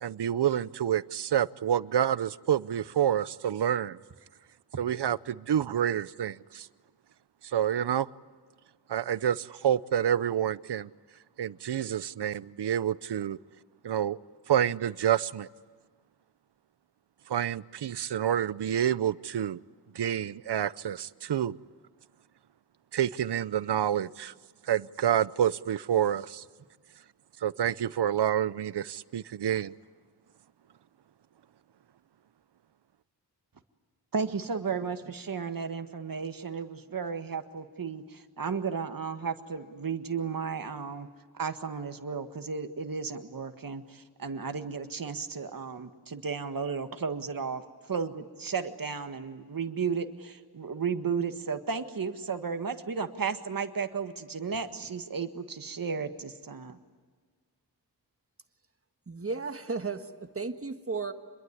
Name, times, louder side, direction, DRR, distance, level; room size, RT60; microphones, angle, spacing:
voice 1, 0.0-4.0 4.8-6.7 7.4-8.1 8.9-10.9 11.4-13.4 13.8-14.2 14.5-15.5 17.3-19.6 19.9-21.6 22.9-24.3 24.7-26.4 27.4-29.7, right 10 dB, 80° right, 0.7 m, -28 dB
voice 2, 34.1-41.1 41.3-47.6 47.9-56.8, right 5 dB, 55° right, 1.7 m, -34 dB
voice 3, 59.1-61.1, right 4 dB, 35° right, 1.5 m, -34 dB
27.5 x 22.0 x 9.8 m
wide cardioid pair, 110°, 40 cm